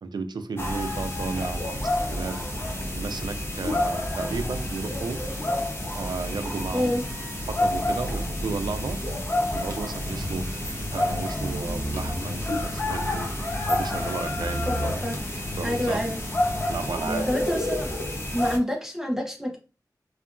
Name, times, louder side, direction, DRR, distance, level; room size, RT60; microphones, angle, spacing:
voice 1, 0.0-2.4 2.9-5.2 5.9-7.1 7.5-9.0 9.5-10.5 10.9-13.3 13.7-15.0 15.6-16.0 16.7-17.3, right 4 dB, 85° right, 9 dB, 0.4 m, -33 dB
sound 1, 0.6-18.6, left 1 dB, 35° left, 0.7 m, -29 dB
sound 2, 10.0-17.5, equal, 55° right, 0.7 m, -36 dB
voice 2, 14.7-15.2 15.6-16.2 17.3-17.9 18.3-19.6, left 1 dB, 5° right, -1 dB, 0.5 m, -27 dB
2.8 x 2.3 x 2.4 m, 0.33 s
wide cardioid pair, 75°, 7 cm